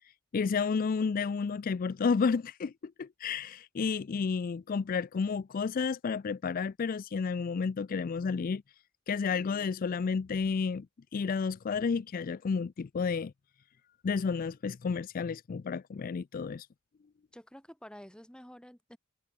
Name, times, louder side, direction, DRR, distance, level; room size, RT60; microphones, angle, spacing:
voice 1, 0.3-8.6 9.1-10.9 11.1-13.3 14.0-16.7, left 5 dB, 40° left, 0.4 m, -31 dB
voice 2, 17.3-19.0, equal, 5° left, 3.3 m, -50 dB
head